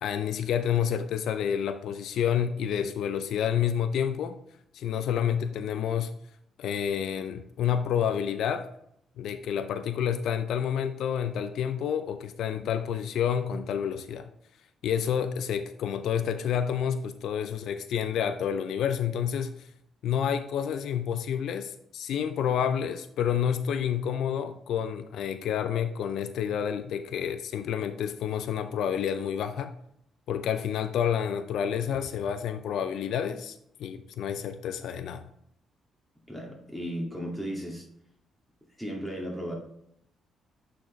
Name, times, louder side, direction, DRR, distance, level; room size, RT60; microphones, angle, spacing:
voice 1, 0.0-4.4 4.7-6.1 6.6-8.7 9.2-14.3 14.8-19.7 20.0-29.7 30.3-35.2, left 8 dB, 75° left, 9 dB, 0.4 m, -29 dB
voice 2, 36.3-37.9 38.8-39.5, equal, 5° right, -1 dB, 2.0 m, -35 dB
8.6 x 4.2 x 3.1 m, 0.73 s
cardioid pair, 90°, 0 cm